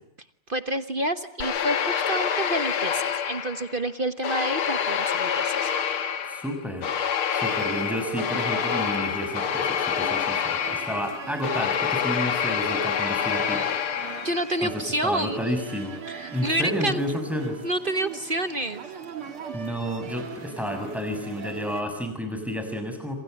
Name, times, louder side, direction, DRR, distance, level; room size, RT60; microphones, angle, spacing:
voice 1, 0.5-5.7 14.2-15.4 16.1-17.0 17.6-18.8, right 1 dB, 35° right, 11 dB, 1.0 m, -28 dB
sound 1, 1.4-3.8 4.2-14.6, left 8 dB, 80° left, 2.4 m, -27 dB
voice 2, 6.2-6.9 7.3-13.7 14.6-16.0 16.3-17.6 19.5-23.2, equal, ahead, 6 dB, 6.5 m, -31 dB
sound 2, 7.4-21.8, right 6 dB, 80° right, 3.3 m, -40 dB
27.5 x 27.0 x 7.8 m, 0.76 s
omnidirectional pair, 2.3 m